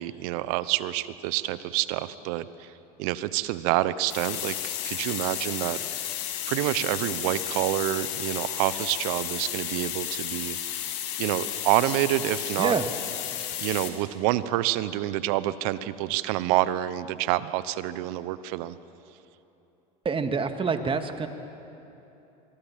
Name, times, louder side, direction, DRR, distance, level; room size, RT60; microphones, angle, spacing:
voice 1, 0.0-2.7 3.0-5.8 6.5-10.6 11.2-12.7 13.6-18.8, right 15 dB, 70° right, 16 dB, 1.0 m, -27 dB
sound 1, 4.1-13.9, left 11 dB, 65° left, 2.9 m, -33 dB
voice 2, 20.0-21.3, right 5 dB, 25° right, 8 dB, 2.1 m, -26 dB
25.0 x 23.0 x 7.5 m, 3.0 s
hypercardioid pair, 85°, 20 cm